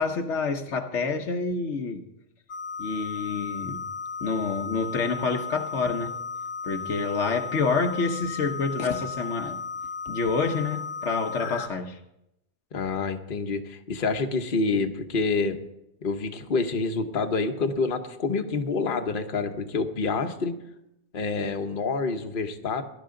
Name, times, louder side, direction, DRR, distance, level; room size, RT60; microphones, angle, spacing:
voice 1, 0.0-2.0 2.8-3.9 4.2-6.1 6.6-9.6 10.1-12.0, left 4 dB, 70° left, 5 dB, 1.3 m, -28 dB
sound 1, 2.5-11.7, left 5 dB, 90° left, 1.2 m, -35 dB
voice 2, 12.7-15.6 16.0-20.5 21.1-22.8, left 4 dB, 45° left, 5 dB, 1.1 m, -27 dB
18.5 x 11.5 x 3.8 m, 0.86 s
omnidirectional pair, 1.2 m